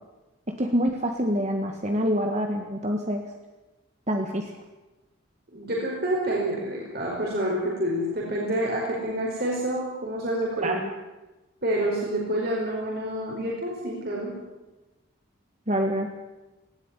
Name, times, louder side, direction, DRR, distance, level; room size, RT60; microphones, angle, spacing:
voice 1, 0.6-3.2 4.1-4.5 10.6-10.8 15.7-16.1, equal, 35° right, 3 dB, 1.7 m, -26 dB
voice 2, 5.5-10.8 11.6-14.3, right 1 dB, 50° right, -3 dB, 4.9 m, -28 dB
19.0 x 17.5 x 9.8 m, 1.1 s
head